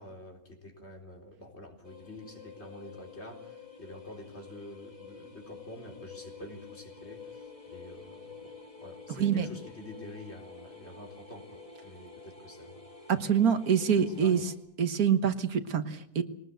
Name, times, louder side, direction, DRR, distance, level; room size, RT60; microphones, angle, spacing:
voice 1, 0.0-8.5 8.8-12.9 14.2-14.4, left 1 dB, 45° left, 2 dB, 4.3 m, -47 dB
sound 1, 1.8-14.5, left 4 dB, 20° left, 3.2 m, -49 dB
voice 2, 9.1-9.5 13.1-14.5 14.8-16.2, right 7 dB, 85° right, 10 dB, 1.8 m, -26 dB
22.0 x 19.0 x 8.0 m, 0.72 s
omnidirectional pair, 1.5 m